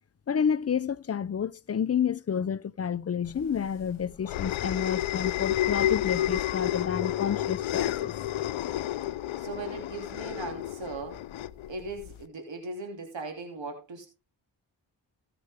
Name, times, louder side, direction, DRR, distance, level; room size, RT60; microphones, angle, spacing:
voice 1, 0.3-8.2, left 7 dB, 35° left, 0.5 m, -30 dB
sound 1, 3.4-12.2, left 12 dB, 85° left, 0.6 m, -30 dB
voice 2, 9.4-11.2 11.7-14.1, right 3 dB, 70° right, 2.7 m, -38 dB
16.5 x 6.8 x 3.5 m
cardioid pair, 65°, 46 cm